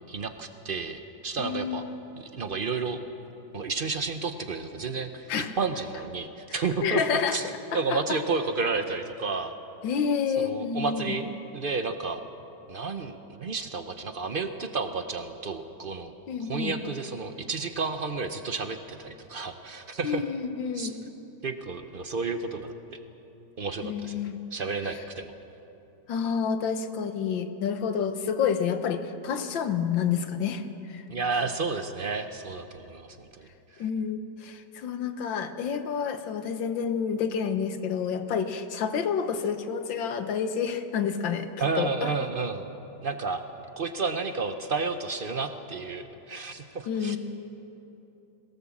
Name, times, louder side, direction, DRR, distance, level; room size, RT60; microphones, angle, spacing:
voice 1, 0.1-1.8 2.2-3.0 3.5-5.3 5.6-9.5 10.4-11.3 11.5-12.2 12.7-16.1 16.4-20.2 20.7-20.9 21.4-22.7 23.6-24.2 24.5-25.3 31.1-33.8 41.6-42.6 43.0-43.4 43.8-47.2, right 4 dB, 50° right, 7 dB, 0.6 m, -31 dB
voice 2, 1.4-1.9 5.3-5.5 6.5-7.4 7.9-8.2 9.8-11.2 16.3-16.7 20.0-21.0 23.8-24.4 26.1-30.6 30.9-31.0 31.3-31.4 33.8-41.5 41.7-42.1 46.9-47.2, left 7 dB, 80° left, 9 dB, 1.8 m, -29 dB
21.5 x 17.5 x 7.3 m, 2.9 s
omnidirectional pair, 2.0 m